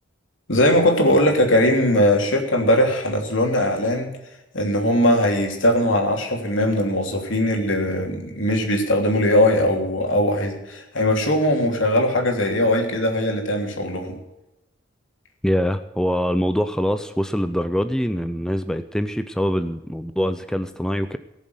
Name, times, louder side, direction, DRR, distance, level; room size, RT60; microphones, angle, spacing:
voice 1, 0.5-4.1 4.5-14.2, left 1 dB, 80° left, 2 dB, 3.1 m, -20 dB
voice 2, 15.4-21.2, equal, 5° left, 9 dB, 0.5 m, -24 dB
18.0 x 7.3 x 8.0 m, 0.98 s
head